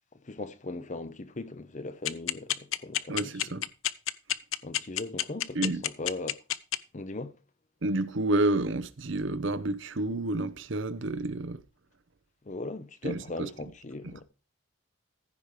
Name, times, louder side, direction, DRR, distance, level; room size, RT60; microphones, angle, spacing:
voice 1, 0.2-3.6 4.6-6.4 6.9-7.4 12.5-14.2, left 2 dB, 35° left, 0.7 m, -39 dB
sound 1, 2.1-6.8, left 13 dB, 75° left, 0.6 m, -27 dB
voice 2, 3.1-3.7 5.5-5.8 7.8-11.6 13.0-13.5 14.0-14.2, right 2 dB, 60° right, 0.8 m, -30 dB
15.0 x 5.2 x 4.9 m
head